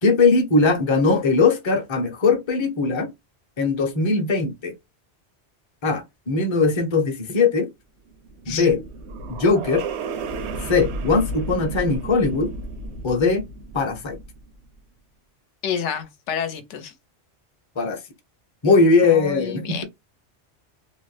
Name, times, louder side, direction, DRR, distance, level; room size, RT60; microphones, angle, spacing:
voice 1, 0.0-3.1 3.6-4.7 5.8-7.7 8.5-8.8 9.3-9.8 10.6-12.5 13.0-13.5 13.7-14.2 17.8-18.0 18.6-19.8, left 4 dB, 30° left, 0.6 m, -20 dB
sound 1, 8.1-14.6, right 3 dB, 75° right, 0.8 m, -33 dB
voice 2, 15.6-16.9 19.1-19.8, left 8 dB, 85° left, 0.9 m, -29 dB
2.7 x 2.0 x 3.1 m
omnidirectional pair, 1.2 m